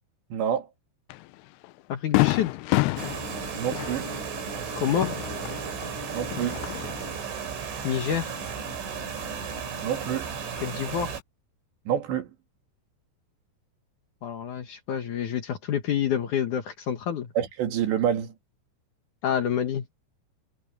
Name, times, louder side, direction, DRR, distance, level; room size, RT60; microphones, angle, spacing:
voice 1, 0.3-0.7 3.6-4.1 6.1-6.6 9.8-10.3 11.9-12.3 17.4-18.3, right 9 dB, 70° right, 4.5 m, -27 dB
Fireworks, 1.1-1.2 1.6-1.7 2.1-5.9 6.2-7.1, left 21 dB, 85° left, 2.5 m, -28 dB
voice 2, 1.9-2.5 4.8-5.2 7.8-8.4 10.6-11.2 14.2-17.3 19.2-19.9, left 9 dB, 65° left, 2.0 m, -28 dB
sound 1, 3.0-11.2, right 6 dB, 90° right, 6.8 m, -34 dB
omnidirectional pair, 5.2 m